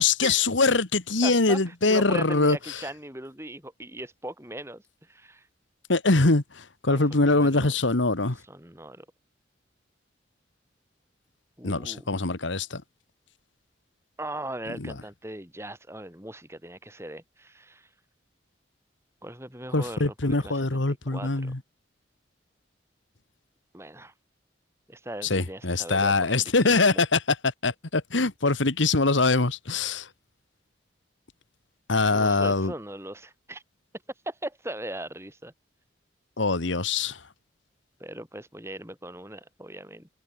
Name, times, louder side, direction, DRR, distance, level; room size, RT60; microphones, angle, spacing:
voice 1, 0.0-2.8 5.9-8.4 11.6-12.8 14.8-14.9 19.7-21.6 25.2-30.1 31.9-32.7 36.4-37.2, left 3 dB, 80° left, 1.7 m, -23 dB
voice 2, 1.2-5.5 6.9-7.0 7.3-7.8 8.5-9.1 11.6-12.1 14.2-17.9 19.2-21.5 23.7-24.1 24.9-27.0 32.1-33.6 34.3-35.5 38.0-40.1, right 1 dB, 15° right, 5.4 m, -39 dB
head